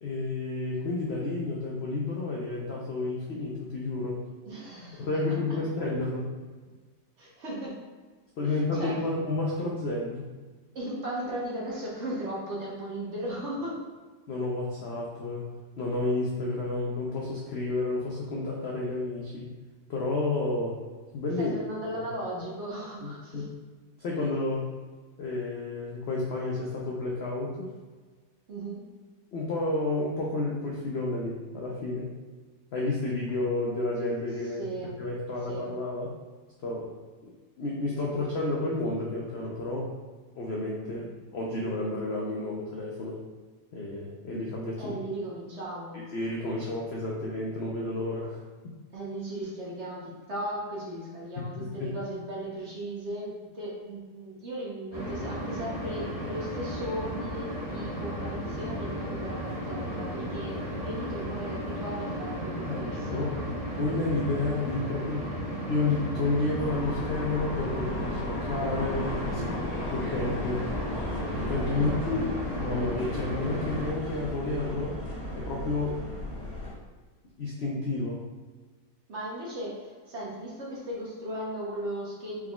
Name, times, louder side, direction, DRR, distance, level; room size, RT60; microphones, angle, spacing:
voice 1, 0.0-4.2 5.0-6.3 8.4-10.2 14.3-15.5 15.8-19.5 19.9-20.8 21.1-21.5 23.0-23.5 24.0-24.7 25.2-27.7 29.3-32.1 32.7-34.6 35.0-36.1 36.6-36.9 37.2-37.3 37.6-39.9 40.4-43.2 43.7-45.0 46.1-48.4 51.4-51.9 62.6-63.4 63.8-65.3 65.7-69.5 69.9-70.6 71.4-72.3 72.6-75.0 75.3-76.0 77.4-78.3, left 2 dB, 70° left, -3 dB, 0.6 m, -31 dB
voice 2, 4.4-5.6 7.2-7.8 8.4-8.9 10.7-13.8 21.4-23.5 28.5-28.8 34.4-35.0 35.5-35.7 44.8-46.1 48.9-63.2 69.3-69.9 71.7-72.0 79.1-82.5, right 1 dB, 50° right, -5 dB, 1.0 m, -37 dB
sound 1, 54.9-73.9, equal, 20° right, 1.5 m, -34 dB
sound 2, 66.6-76.7, left 1 dB, 30° left, 1.3 m, -36 dB
4.5 x 3.8 x 2.3 m, 1.4 s
omnidirectional pair, 1.8 m